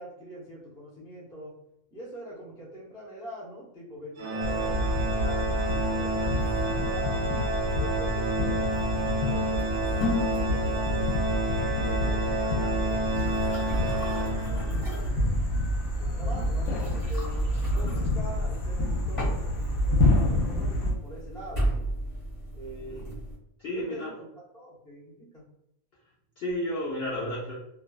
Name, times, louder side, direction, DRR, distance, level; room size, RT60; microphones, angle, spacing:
voice 1, 0.0-1.5 1.9-7.2 7.7-11.1 11.5-15.3 16.0-21.8 22.5-23.1 23.7-24.3 24.5-25.4, equal, 5° left, -6 dB, 0.4 m, -44 dB
Organ, 4.2-14.9, right 2 dB, 65° right, 0.8 m, -30 dB
sound 1, 4.4-20.9, left 1 dB, 75° left, 1.0 m, -28 dB
sound 2, 9.5-23.3, equal, 25° left, 1.2 m, -36 dB
voice 2, 23.6-24.1 26.4-27.5, left 1 dB, 60° left, -5 dB, 0.7 m, -32 dB
2.4 x 2.3 x 2.3 m, 0.80 s
omnidirectional pair, 1.4 m